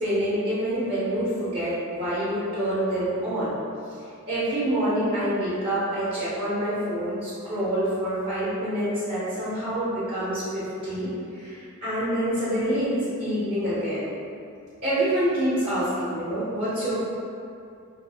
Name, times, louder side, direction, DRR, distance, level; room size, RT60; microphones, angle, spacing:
voice 1, 0.0-3.5 4.3-11.1 11.3-14.1 14.8-17.1, right 1 dB, 35° right, -12 dB, 0.6 m, -26 dB
2.6 x 2.0 x 2.7 m, 2.4 s
head